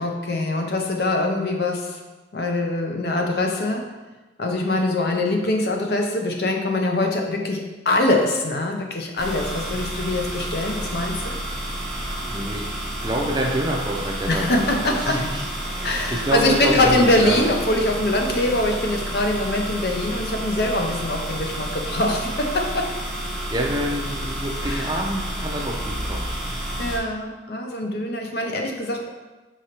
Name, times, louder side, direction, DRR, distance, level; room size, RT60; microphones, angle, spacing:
voice 1, 0.0-2.0 2.3-3.9 4.4-11.4 14.3-15.3 15.8-22.9 24.6-25.0 26.8-29.1, left 1 dB, 60° left, 2 dB, 0.5 m, -23 dB
sound 1, 9.2-27.0, right 1 dB, ahead, 0.8 m, -30 dB
voice 2, 12.3-12.7 13.0-17.5 23.5-26.6, right 1 dB, 25° right, 0 dB, 0.5 m, -27 dB
4.8 x 3.8 x 2.9 m, 1.2 s
head